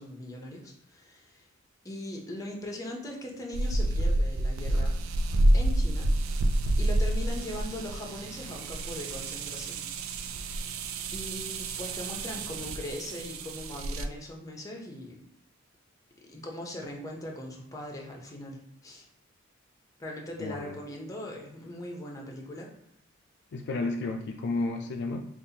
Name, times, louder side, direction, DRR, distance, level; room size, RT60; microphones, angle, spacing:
voice 1, 0.0-1.4 1.8-4.9 5.5-6.1 6.8-9.8 10.4-10.5 11.1-15.2 16.3-19.1 20.0-22.7, left 1 dB, 15° left, 0 dB, 0.7 m, -40 dB
sound 1, 3.5-14.1, right 1 dB, 85° right, 0.4 m, -28 dB
voice 2, 20.4-20.8 23.5-25.3, left 3 dB, 60° left, 3 dB, 0.4 m, -32 dB
5.2 x 2.5 x 2.8 m, 0.72 s
head